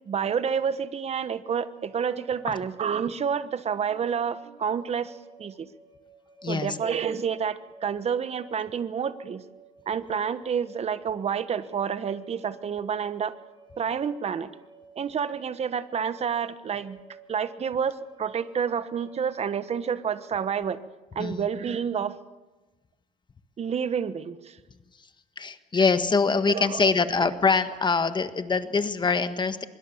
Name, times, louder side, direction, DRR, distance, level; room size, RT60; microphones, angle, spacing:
voice 1, 0.1-5.7 6.5-9.4 9.9-13.4 13.8-14.5 15.0-17.0 17.3-20.8 21.1-22.2 23.6-24.6 25.8-25.9 26.5-26.9, right 7 dB, 40° right, 13 dB, 1.2 m, -29 dB
sound 1, 1.8-20.5, right 4 dB, 20° right, 3.4 m, -54 dB
voice 2, 6.4-6.8 21.2-21.4 25.4-29.6, left 4 dB, 25° left, 10 dB, 1.5 m, -24 dB
24.5 x 22.0 x 7.3 m, 1.2 s
cardioid pair, 110°, 17 cm